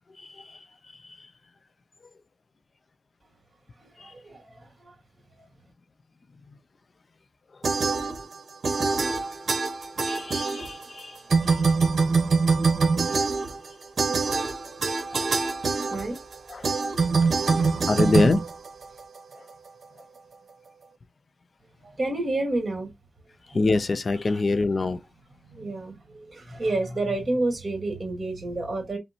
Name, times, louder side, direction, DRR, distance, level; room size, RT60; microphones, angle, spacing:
voice 1, 3.8-4.9 5.4-5.5 14.6-14.8 15.1-17.8 21.8-22.9 23.5-23.6 24.3-24.7 25.3-29.0, right 2 dB, 40° right, 2.1 m, -31 dB
sound 1, 7.6-8.4 8.6-11.0 11.3-19.2, right 4 dB, 65° right, 0.9 m, -24 dB
voice 2, 10.1-11.1 16.6-16.7 17.9-18.4 23.5-25.0, left 3 dB, 50° left, 0.5 m, -23 dB
5.3 x 2.2 x 2.8 m
cardioid pair, 75°, 0 cm